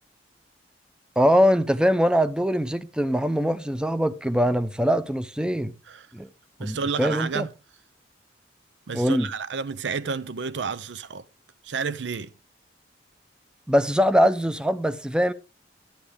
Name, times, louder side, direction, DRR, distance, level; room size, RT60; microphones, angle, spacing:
voice 1, 1.2-5.7 6.1-6.3 6.6-7.5 8.9-9.3 13.7-15.3, equal, 5° right, 0.5 m, -22 dB
voice 2, 6.6-7.5 8.9-11.2 11.6-12.3, right 5 dB, 80° right, 0.6 m, -30 dB
11.5 x 9.8 x 3.4 m
head